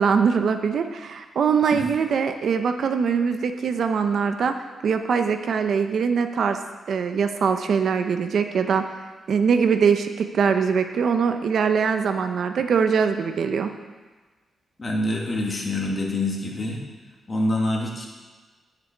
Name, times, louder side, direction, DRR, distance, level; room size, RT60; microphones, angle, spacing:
voice 1, 0.0-4.5 4.8-6.6 6.9-8.8 9.3-13.7, right 6 dB, 60° right, 7 dB, 0.7 m, -22 dB
voice 2, 14.8-16.8 17.3-18.1, left 1 dB, 25° left, -1 dB, 1.9 m, -26 dB
7.9 x 6.9 x 8.3 m, 1.3 s
wide cardioid pair, 150°, 0 cm